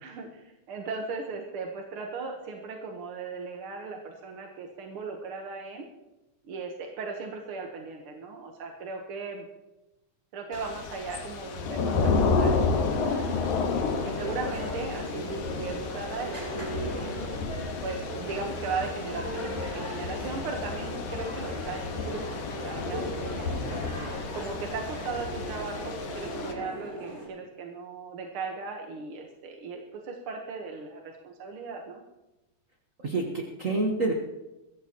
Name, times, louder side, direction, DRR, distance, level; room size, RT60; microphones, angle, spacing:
voice 1, 0.0-5.9 6.5-9.5 10.3-13.3 13.9-17.3 17.8-22.2 22.5-23.6 24.3-32.0, right 4 dB, 55° right, 1 dB, 1.7 m, -37 dB
Thunder / Rain, 10.5-26.5, left 4 dB, 70° left, 2.7 m, -31 dB
sound 1, 12.8-27.3, equal, 30° right, 6.7 m, -38 dB
voice 2, 33.0-34.1, right 2 dB, 75° right, 0 dB, 0.7 m, -28 dB
22.5 x 15.5 x 3.0 m, 1.0 s
omnidirectional pair, 3.5 m